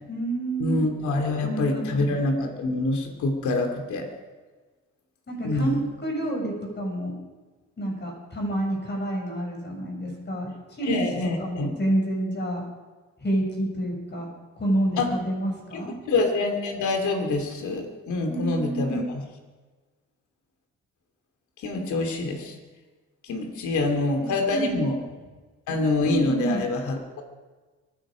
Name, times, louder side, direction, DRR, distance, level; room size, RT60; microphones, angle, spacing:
voice 1, 0.1-0.8 1.4-2.2 5.3-7.1 7.8-11.0 11.4-12.6 13.2-14.2 14.6-15.9 18.3-19.0 23.3-23.4 23.7-23.8 24.2-24.9 26.0-26.6, right 1 dB, 35° left, 0 dB, 6.8 m, -29 dB
voice 2, 0.6-4.1 5.4-5.8 10.8-11.7 15.0-15.2 15.7-15.8 16.1-19.0 21.6-22.5 23.2-25.0 25.7-27.2, left 2 dB, 75° left, 4 dB, 2.8 m, -26 dB
24.0 x 10.5 x 5.1 m, 1.3 s
cardioid pair, 90°, 30 cm